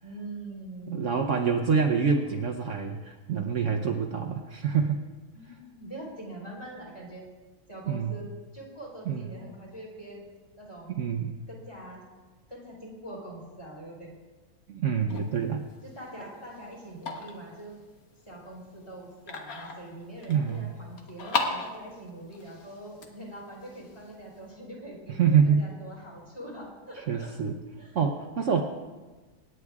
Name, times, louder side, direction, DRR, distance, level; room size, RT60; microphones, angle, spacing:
voice 1, 0.0-1.2 2.1-2.2 5.3-7.3 7.7-8.3 8.5-10.2 10.6-10.9 11.5-12.0 12.5-14.1 15.8-17.7 18.3-27.3 27.8-28.0 28.5-28.6, right 1 dB, 20° left, -4 dB, 3.5 m, -43 dB
voice 2, 0.9-5.0 7.9-8.2 9.1-9.3 11.0-11.3 14.7-15.6 20.3-20.7 25.1-25.6 27.0-27.6 27.9-28.6, right 6 dB, 60° right, 2 dB, 1.0 m, -26 dB
sound 1, 15.1-24.5, left 4 dB, 65° left, 1.7 m, -38 dB
26.5 x 9.8 x 2.4 m, 1.3 s
omnidirectional pair, 1.6 m